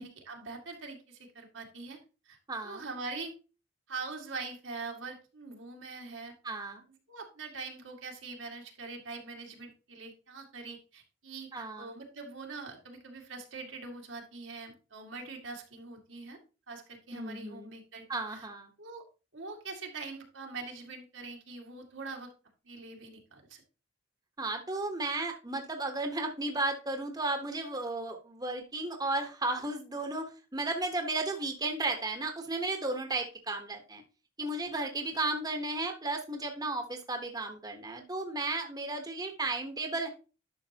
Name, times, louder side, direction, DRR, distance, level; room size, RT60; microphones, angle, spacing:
voice 1, 0.0-2.0 2.3-2.4 2.6-3.3 3.9-6.3 7.1-16.4 16.7-18.0 18.3-18.5 18.8-19.0 19.3-22.3 22.6-23.6, right 4 dB, 85° right, 1 dB, 2.1 m, -43 dB
voice 2, 2.5-2.8 6.4-6.8 11.5-11.9 17.1-17.7 18.1-18.7 24.4-34.0 34.4-40.1, right 2 dB, 20° right, 4 dB, 1.1 m, -34 dB
11.0 x 6.2 x 2.9 m, 0.32 s
head